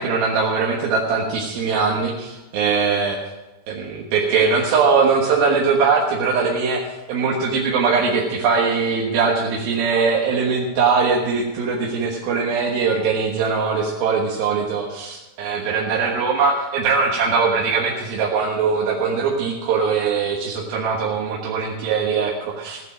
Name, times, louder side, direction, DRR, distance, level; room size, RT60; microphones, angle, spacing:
voice 1, 0.0-3.2 3.7-22.8, right 5 dB, 85° right, -2 dB, 3.3 m, -21 dB
16.0 x 9.5 x 6.2 m, 1.1 s
omnidirectional pair, 4.1 m